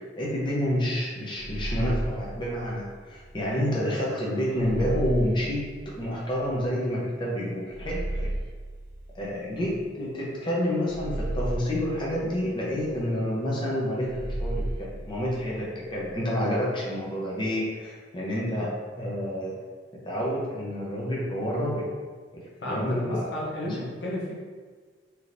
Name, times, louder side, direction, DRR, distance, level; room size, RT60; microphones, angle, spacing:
voice 1, 0.0-8.3 9.1-19.6 20.0-21.9 22.6-23.3 23.8-23.9, equal, 25° left, -5 dB, 0.7 m, -29 dB
sound 1, 1.3-3.5 4.5-6.7 7.7-10.0 10.8-13.0 14.0-16.2, right 1 dB, 55° right, 0.3 m, -34 dB
voice 2, 22.6-24.4, left 1 dB, 75° left, -3 dB, 0.7 m, -32 dB
3.4 x 2.9 x 2.5 m, 1.5 s
head